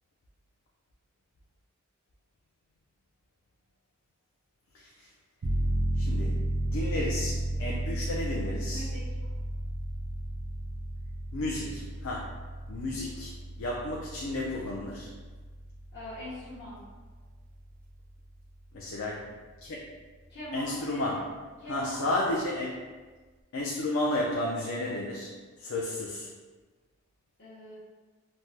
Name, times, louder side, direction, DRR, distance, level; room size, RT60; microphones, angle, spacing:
voice 1, 4.7-5.1 6.0-8.9 11.3-12.3 12.7-13.3 13.6-15.1 18.7-19.3 19.6-19.8 20.5-21.3 21.7-22.7 23.5-25.3 25.6-26.3, left 1 dB, 70° left, -4 dB, 0.4 m, -32 dB
sound 1, 5.4-17.9 18.3-18.4, right 1 dB, 80° right, 0.5 m, -33 dB
voice 2, 8.7-9.0 15.9-16.8 20.3-21.3 21.6-22.1 27.4-27.7, equal, 55° left, -11 dB, 0.8 m, -41 dB
3.2 x 2.1 x 2.7 m, 1.3 s
head